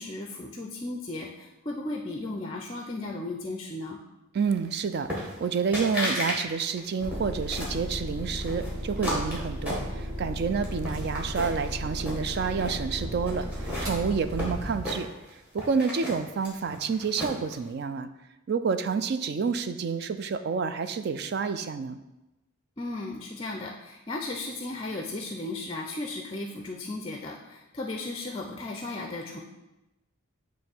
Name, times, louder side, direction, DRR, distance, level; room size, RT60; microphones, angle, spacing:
voice 1, 0.0-4.0 22.8-29.4, left 2 dB, 25° left, 2 dB, 0.5 m, -35 dB
voice 2, 4.3-15.1 15.5-18.1 18.5-22.0, right 5 dB, 50° right, 10 dB, 0.3 m, -29 dB
sound 1, 5.1-5.5 5.7-6.4 6.7-7.8 8.4-10.3 10.6-11.7 12.0-12.8 13.3-15.3 15.6-17.5, equal, 5° right, 1.5 m, -34 dB
sound 2, 7.0-15.0, equal, 75° right, 1.6 m, -35 dB
8.6 x 3.1 x 4.4 m, 0.98 s
head